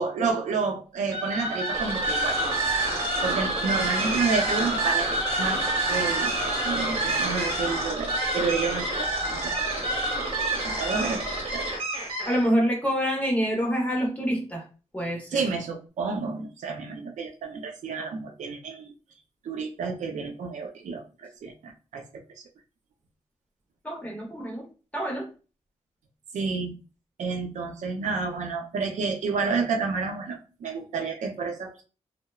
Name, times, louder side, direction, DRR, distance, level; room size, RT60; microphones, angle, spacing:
voice 1, 0.0-2.4 3.2-6.3 6.6-10.0 10.6-11.7 15.3-18.9 19.4-22.0 26.3-26.7 27.2-31.8, right 4 dB, 85° right, 3 dB, 0.5 m, -30 dB
sound 1, 1.1-12.5, right 1 dB, 50° right, 0.9 m, -27 dB
voice 2, 12.3-14.6 14.9-15.4 23.8-24.7 24.9-25.3, equal, 10° left, -1 dB, 0.6 m, -26 dB
2.9 x 2.0 x 2.2 m, 0.35 s
wide cardioid pair, 145°, 12 cm